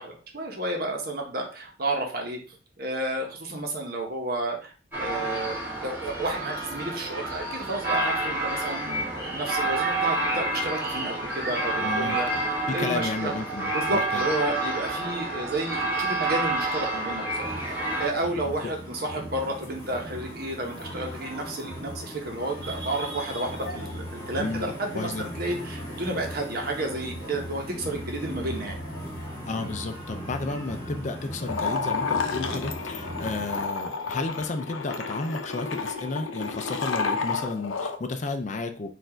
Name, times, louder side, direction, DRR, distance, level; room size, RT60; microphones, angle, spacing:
voice 1, 0.0-12.3 12.7-13.4 13.7-17.4 18.0-28.7, right 2 dB, 50° right, 1 dB, 1.1 m, -31 dB
sound 1, 4.9-18.1, right 2 dB, 10° right, 1.8 m, -29 dB
voice 2, 11.8-14.3 18.6-18.7 24.4-25.3 29.4-38.9, left 3 dB, 40° left, 7 dB, 0.4 m, -32 dB
sound 2, 17.4-33.7, equal, 20° left, 1.9 m, -38 dB
sound 3, 31.4-38.0, left 4 dB, 85° left, 0.6 m, -30 dB
4.3 x 2.6 x 4.4 m, 0.37 s
head